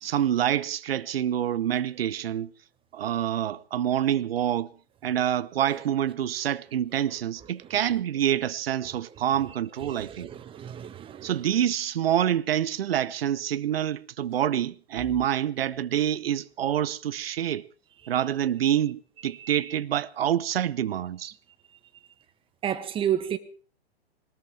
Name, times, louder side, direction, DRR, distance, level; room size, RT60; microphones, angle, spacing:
voice 1, 0.0-2.5 2.9-4.7 5.0-10.3 11.2-17.7 18.1-21.3, right 10 dB, 65° right, 0.9 m, -27 dB
voice 2, 9.8-11.3 19.4-19.5 22.6-23.4, right 10 dB, 15° right, 1.2 m, -31 dB
20.5 x 19.5 x 3.4 m
figure-of-eight pair, 120°, 32 cm